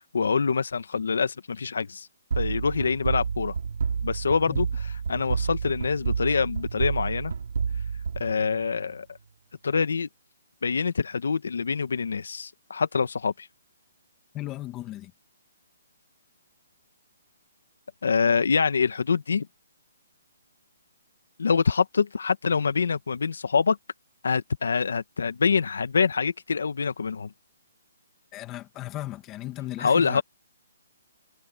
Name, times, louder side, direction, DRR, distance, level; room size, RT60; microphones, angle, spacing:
voice 1, 0.0-2.1 2.4-3.6 4.0-7.3 8.1-9.2 9.6-10.1 10.6-13.5 18.0-19.5 21.4-23.8 24.2-27.3 29.8-30.2, left 5 dB, 80° left, 1.2 m, -25 dB
sound 1, 2.3-8.9, right 6 dB, 75° right, 4.6 m, -30 dB
voice 2, 14.3-15.1 28.3-30.2, left 15 dB, 15° left, 2.1 m, -36 dB
hypercardioid pair, 170°, 0 cm